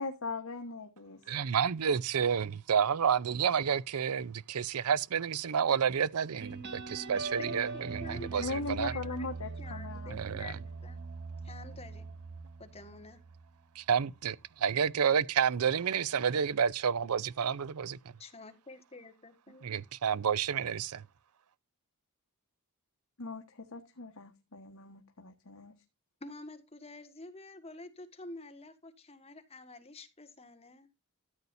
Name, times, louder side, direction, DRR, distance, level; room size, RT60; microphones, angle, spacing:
voice 1, 0.0-1.2 8.4-10.2 23.2-25.7, left 3 dB, 70° left, 1.4 m, -39 dB
voice 2, 1.3-8.9 10.1-10.5 13.8-18.0 19.6-21.0, right 7 dB, 90° right, 0.5 m, -30 dB
sound 1, 6.4-13.6, right 3 dB, 50° right, 1.9 m, -42 dB
voice 3, 7.4-9.3 9.6-11.0 11.4-12.1 12.6-13.2 18.2-19.8 26.2-30.9, left 2 dB, 30° left, 1.6 m, -49 dB
13.5 x 8.4 x 2.6 m
head